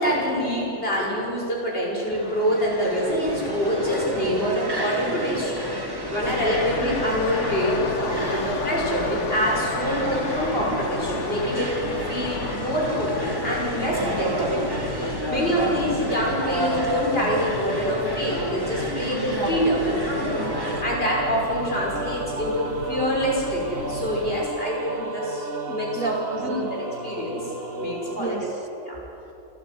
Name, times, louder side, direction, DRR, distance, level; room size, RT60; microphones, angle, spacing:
voice 1, 0.0-20.5 20.8-26.8 27.0-27.4 27.8-28.5 28.8-29.0, equal, 45° left, -3 dB, 6.3 m, -26 dB
sound 1, 2.1-20.8, right 1 dB, 15° right, 2.5 m, -30 dB
sound 2, 6.2-24.5, left 5 dB, 65° left, 1.4 m, -35 dB
sound 3, 20.3-28.4, right 3 dB, 45° right, 2.1 m, -34 dB
voice 2, 25.7-27.6 27.9-29.3, right 3 dB, 90° right, 5 dB, 2.2 m, -35 dB
28.5 x 13.0 x 9.6 m, 2.9 s
omnidirectional pair, 1.3 m